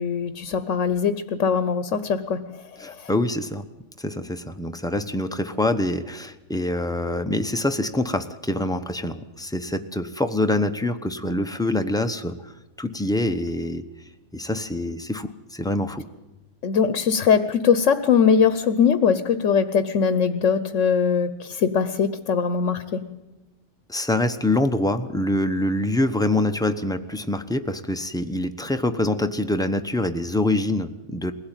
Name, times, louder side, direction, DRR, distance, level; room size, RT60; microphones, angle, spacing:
voice 1, 0.0-2.4 2.8-3.1 16.6-23.0, left 6 dB, 80° left, 12 dB, 1.3 m, -21 dB
voice 2, 2.8-3.7 4.0-12.5 12.8-13.8 14.3-16.1 23.9-31.3, left 1 dB, 5° left, 7 dB, 0.8 m, -25 dB
22.0 x 16.5 x 9.1 m, 1.1 s
omnidirectional pair, 1.3 m